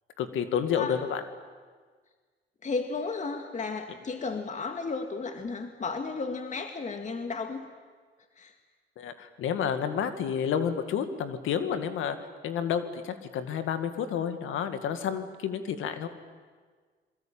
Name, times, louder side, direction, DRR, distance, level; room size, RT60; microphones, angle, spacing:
voice 1, 0.2-1.2 9.0-12.2 12.4-16.1, left 8 dB, 80° left, 9 dB, 2.3 m, -30 dB
voice 2, 2.6-7.6 8.4-8.5, left 4 dB, 40° left, 6 dB, 2.1 m, -33 dB
27.5 x 22.5 x 9.0 m, 1.5 s
cardioid pair, 90°, 20 cm